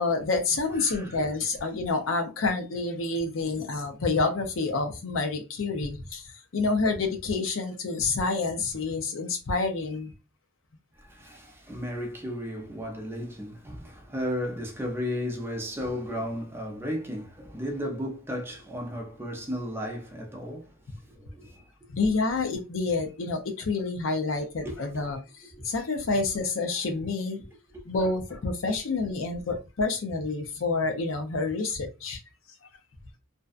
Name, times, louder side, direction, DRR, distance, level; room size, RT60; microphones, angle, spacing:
voice 1, 0.0-10.1 21.9-27.4 27.9-32.2, left 3 dB, 70° left, 0.6 m, -28 dB
voice 2, 0.8-1.2 11.0-20.8 21.1-21.6 24.6-24.8 25.5-25.7, equal, 10° right, 0.5 m, -34 dB
2.6 x 2.2 x 2.4 m
head